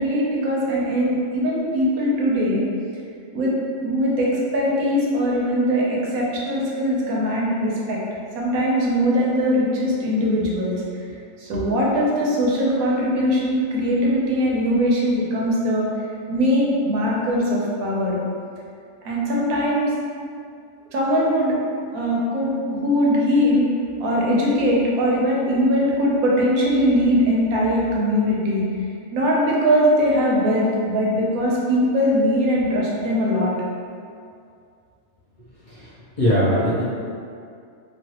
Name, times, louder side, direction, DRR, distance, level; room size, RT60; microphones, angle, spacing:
voice 1, 0.0-2.6 3.3-3.5 3.8-8.0 8.3-10.8 11.4-15.9 16.3-18.1 19.0-19.9 20.9-21.6 21.9-23.7 24.0-28.6 29.1-33.5, equal, 85° right, -4 dB, 1.1 m, -21 dB
voice 2, 35.7-36.8, equal, 45° left, -12 dB, 0.6 m, -21 dB
3.1 x 2.4 x 2.8 m, 2.3 s
omnidirectional pair, 1.5 m